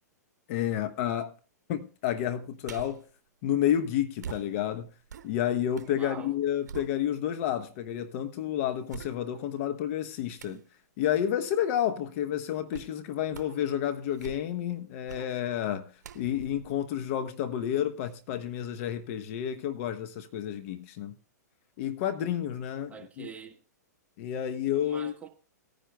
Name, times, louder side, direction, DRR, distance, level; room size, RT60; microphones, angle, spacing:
voice 1, 0.5-1.3 1.7-3.0 3.4-4.9 5.2-10.6 11.0-21.1 21.8-23.3 24.2-25.2, left 10 dB, 50° left, 0.8 m, -30 dB
sound 1, 2.6-3.1 4.2-6.0 6.3-7.4 8.0-8.1 8.9-9.6 10.4-10.7 12.7-13.0 13.3-13.7 14.1-14.7 15.1-15.3 16.0-17.7 18.1-18.2, right 8 dB, 75° right, 0.8 m, -45 dB
voice 2, 5.9-6.3 22.9-23.6 24.8-25.3, right 6 dB, 15° right, 1.4 m, -44 dB
19.0 x 10.0 x 2.3 m
hypercardioid pair, 120°, 10 cm